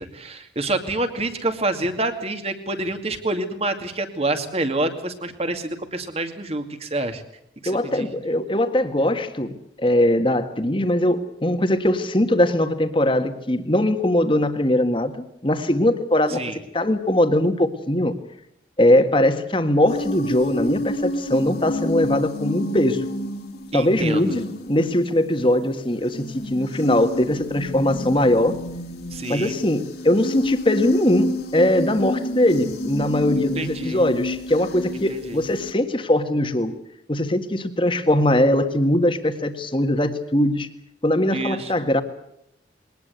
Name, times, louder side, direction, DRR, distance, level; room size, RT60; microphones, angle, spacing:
voice 1, 0.0-7.2 7.6-8.1 16.3-16.6 23.7-24.3 29.1-29.6 33.6-34.1 35.1-35.4 41.3-41.7, right 2 dB, 35° right, 7 dB, 2.4 m, -27 dB
voice 2, 7.6-15.1 15.4-16.4 16.7-18.1 18.8-23.0 23.7-28.5 29.3-36.7 37.1-40.7 41.0-42.0, left 1 dB, 30° left, 8 dB, 1.7 m, -21 dB
sound 1, 19.9-25.5 26.1-35.7, left 1 dB, 60° left, 2.7 m, -29 dB
22.0 x 19.0 x 8.1 m, 0.76 s
head